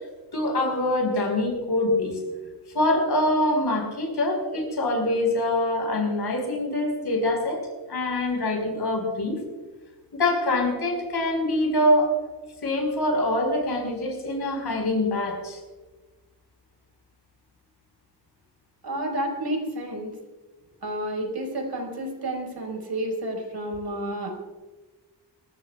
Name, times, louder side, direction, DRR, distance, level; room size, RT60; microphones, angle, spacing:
voice 1, 0.3-2.2 2.7-9.4 10.1-12.1 12.6-15.6, left 1 dB, 65° left, 2 dB, 4.8 m, -24 dB
voice 2, 18.8-20.1 20.8-24.3, right 1 dB, 65° right, 1 dB, 4.8 m, -30 dB
29.0 x 14.5 x 2.4 m, 1.3 s
wide cardioid pair, 180°, 42 cm